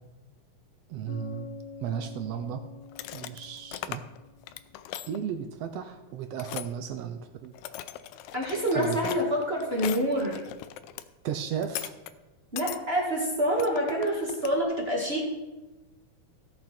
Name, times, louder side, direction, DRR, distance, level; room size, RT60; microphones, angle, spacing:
voice 1, 0.9-1.5 1.8-2.6 3.1-4.1 5.1-7.5 8.7-9.0 11.2-11.9, right 8 dB, 75° right, 8 dB, 1.5 m, -34 dB
Bass guitar, 1.1-4.7, left 6 dB, 65° left, 2.2 m, -46 dB
sound 1, 2.9-4.2 4.4-5.2 6.4-6.7 7.4-11.0 11.6-12.1 12.6-12.8 13.6-14.6, left 12 dB, 80° left, 2.0 m, -39 dB
voice 2, 8.3-10.4 12.5-15.3, equal, 25° right, -3 dB, 1.5 m, -27 dB
16.5 x 6.4 x 4.4 m, 1.1 s
omnidirectional pair, 3.5 m